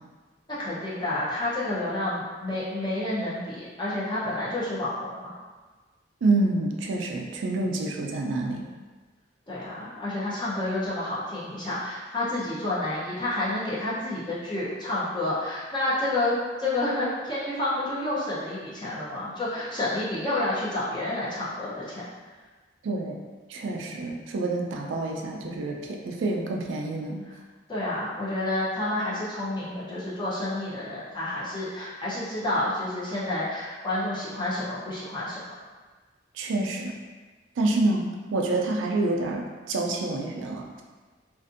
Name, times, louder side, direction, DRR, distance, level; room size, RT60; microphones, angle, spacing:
voice 1, 0.5-5.3 9.5-22.0 27.7-35.4, left 1 dB, 25° left, -10 dB, 0.6 m, -29 dB
voice 2, 6.2-8.6 22.8-23.2 23.5-27.2 36.4-37.0 37.6-38.0 38.3-40.8, right 2 dB, 80° right, 1 dB, 0.4 m, -27 dB
2.5 x 2.5 x 2.5 m, 1.4 s
head